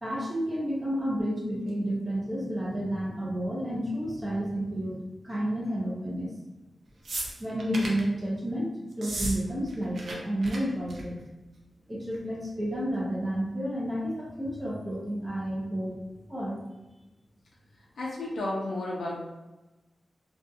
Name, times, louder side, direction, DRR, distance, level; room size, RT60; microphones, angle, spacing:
voice 1, 0.0-5.0 5.2-6.3 7.4-11.2 11.9-16.0 16.3-16.6, equal, 20° right, -5 dB, 0.6 m, -31 dB
sound 1, 7.0-8.1 8.9-9.4 9.6-10.1 10.4-10.6 10.9-11.2 12.1-12.2, right 1 dB, 70° right, 0.5 m, -34 dB
voice 2, 18.0-19.2, left 2 dB, 90° left, -4 dB, 0.5 m, -32 dB
2.6 x 2.3 x 2.6 m, 1.1 s
wide cardioid pair, 125°, 0 cm